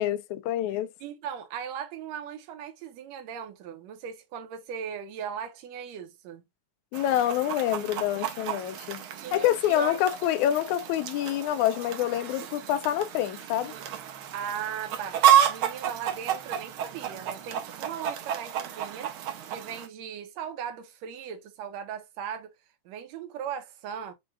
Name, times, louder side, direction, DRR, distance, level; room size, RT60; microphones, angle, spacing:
voice 1, 0.0-0.9 6.9-9.0 9.3-13.7, left 12 dB, 80° left, 2.0 m, -27 dB
voice 2, 1.0-6.4 9.2-10.0 14.3-15.2 15.5-19.1 19.5-22.5 22.9-24.1, right 8 dB, 70° right, 2.1 m, -38 dB
Chicken rooster, 6.9-19.9, right 10 dB, 85° right, 1.1 m, -30 dB
6.2 x 2.4 x 3.4 m
omnidirectional pair, 3.4 m